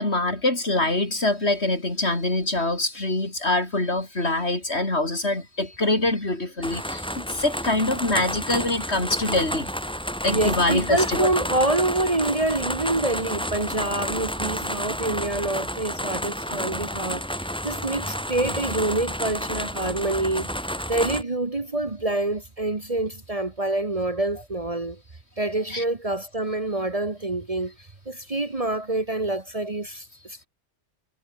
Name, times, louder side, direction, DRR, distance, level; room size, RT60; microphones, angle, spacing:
voice 1, 0.0-9.7 10.2-11.2 25.7-25.8, left 2 dB, 60° left, 5.1 m, -24 dB
sound 1, 6.6-21.2, equal, 5° left, 5.8 m, -30 dB
voice 2, 10.3-25.0 25.4-27.7 28.0-30.4, right 2 dB, 30° right, 1.5 m, -26 dB
omnidirectional pair, 1.2 m